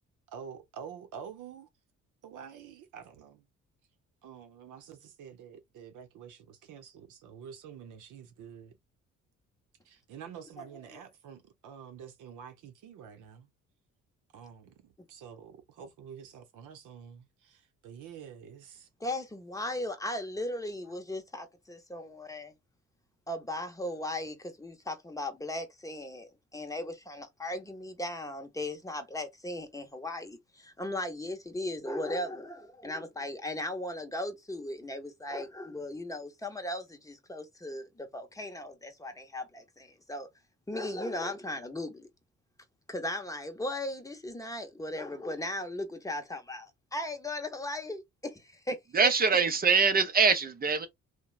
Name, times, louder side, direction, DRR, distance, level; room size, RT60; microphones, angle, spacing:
voice 1, 0.3-1.7 2.2-3.5 4.2-8.7 9.8-13.5 14.3-18.9, right 7 dB, 85° right, 0.7 m, -48 dB
voice 2, 10.6-11.0 19.0-22.5 23.3-40.3 40.7-42.1 42.9-48.8 49.0-49.1, left 1 dB, 10° left, 0.7 m, -37 dB
voice 3, 48.9-50.9, right 5 dB, 30° right, 0.5 m, -23 dB
3.0 x 2.1 x 2.3 m
cardioid pair, 90°, 30 cm